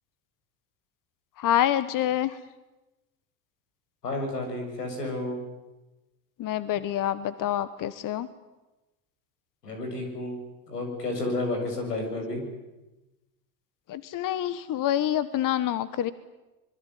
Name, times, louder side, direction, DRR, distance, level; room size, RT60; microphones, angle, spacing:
voice 1, 1.4-2.4 6.4-8.3 13.9-16.1, left 11 dB, 45° left, 15 dB, 1.3 m, -27 dB
voice 2, 4.0-5.4 9.6-10.4 10.7-12.4, left 2 dB, 90° left, 4 dB, 7.3 m, -31 dB
26.0 x 22.5 x 9.5 m, 1.1 s
hypercardioid pair, 75°, 46 cm